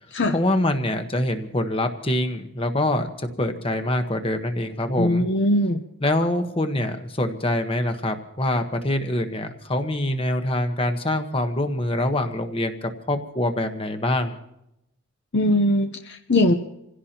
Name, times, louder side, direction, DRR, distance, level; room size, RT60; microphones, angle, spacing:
voice 1, 0.3-5.3 6.0-12.7 13.1-14.4, left 1 dB, 25° left, 6 dB, 1.2 m, -25 dB
voice 2, 5.0-5.8 15.3-16.5, left 1 dB, 50° left, 6 dB, 0.8 m, -20 dB
28.0 x 16.5 x 2.9 m, 0.82 s
head